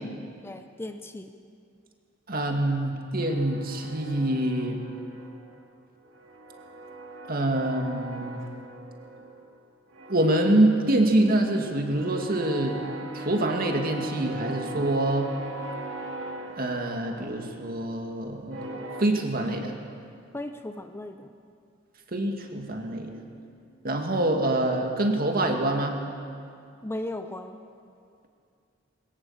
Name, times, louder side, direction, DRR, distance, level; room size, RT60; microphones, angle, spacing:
voice 1, 0.4-1.3 20.3-21.4 26.8-27.6, left 1 dB, 10° left, 7 dB, 0.7 m, -36 dB
voice 2, 2.3-4.8 7.3-8.4 10.1-12.8 13.1-15.3 16.6-19.7 22.1-23.1 23.8-26.0, right 1 dB, 50° right, 3 dB, 2.2 m, -25 dB
sound 1, 3.2-5.7 6.0-9.6 9.9-19.0, right 2 dB, 70° right, 2.0 m, -41 dB
21.5 x 17.5 x 7.3 m, 2.4 s
head